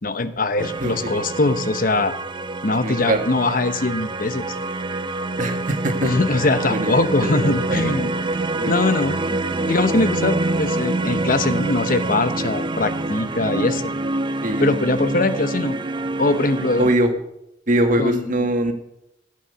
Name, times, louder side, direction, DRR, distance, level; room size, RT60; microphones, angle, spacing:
voice 1, 0.0-2.1 2.6-4.6 6.0-8.1 8.7-9.2 9.7-13.8 14.6-15.8 16.2-16.9 18.0-18.5, left 2 dB, 50° left, 11 dB, 0.9 m, -21 dB
sound 1, 0.6-17.0, right 2 dB, 25° right, 0.6 m, -26 dB
voice 2, 0.8-1.1 2.8-3.2 5.4-6.1 6.7-7.9 8.5-9.1 14.4-14.7 16.8-17.1 17.7-18.7, right 1 dB, 45° right, 5 dB, 1.8 m, -22 dB
15.0 x 8.6 x 6.8 m, 0.82 s
head